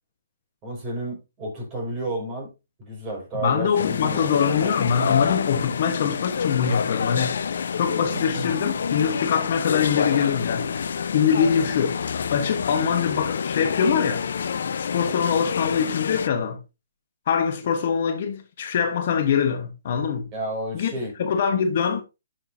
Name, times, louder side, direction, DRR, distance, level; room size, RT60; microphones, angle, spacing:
voice 1, 0.6-2.5 2.8-4.8 8.3-8.5 20.3-21.1, right 1 dB, 25° right, 5.4 m, -31 dB
voice 2, 3.3-7.4 7.8-12.0 12.3-14.2 14.8-16.6 17.3-20.3 20.7-20.9 21.2-22.0, left 7 dB, 50° left, 1.2 m, -23 dB
sound 1, 3.7-16.3, left 6 dB, 65° left, 0.7 m, -28 dB
10.5 x 6.4 x 2.7 m
hypercardioid pair, 150°, 0 cm